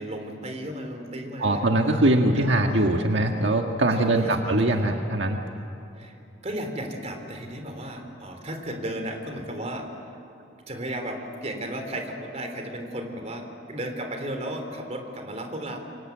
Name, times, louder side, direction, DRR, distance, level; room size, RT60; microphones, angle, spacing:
voice 1, 0.0-1.7 2.2-2.9 3.9-4.9 6.0-6.1 6.4-9.9 10.7-15.8, right 1 dB, 40° right, 5 dB, 3.6 m, -34 dB
voice 2, 1.4-5.4, right 1 dB, 75° right, 3 dB, 1.6 m, -22 dB
29.0 x 24.5 x 8.5 m, 2.8 s
head